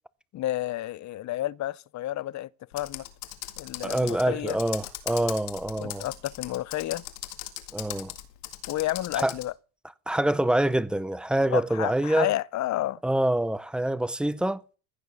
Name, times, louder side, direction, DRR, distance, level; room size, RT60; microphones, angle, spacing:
voice 1, 0.3-3.0 3.6-4.6 5.8-7.0 8.7-9.5 11.5-13.0, left 14 dB, 40° left, 0.6 m, -31 dB
Computer keyboard, 2.7-9.5, left 15 dB, 85° left, 2.2 m, -39 dB
voice 2, 3.8-6.1 7.7-8.1 9.2-9.4 10.1-12.3 13.0-14.6, right 1 dB, ahead, 0.6 m, -26 dB
15.5 x 6.9 x 6.4 m
supercardioid pair, 100°, 47 cm